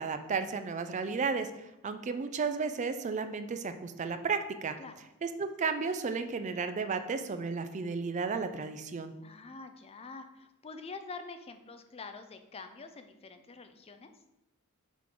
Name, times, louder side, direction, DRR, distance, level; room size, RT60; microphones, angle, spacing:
voice 1, 0.0-1.5 1.8-4.8 5.2-9.1, right 5 dB, 35° right, 9 dB, 0.4 m, -33 dB
voice 2, 9.2-14.1, left 4 dB, 25° left, 8 dB, 0.5 m, -46 dB
6.0 x 3.7 x 4.5 m, 0.92 s
head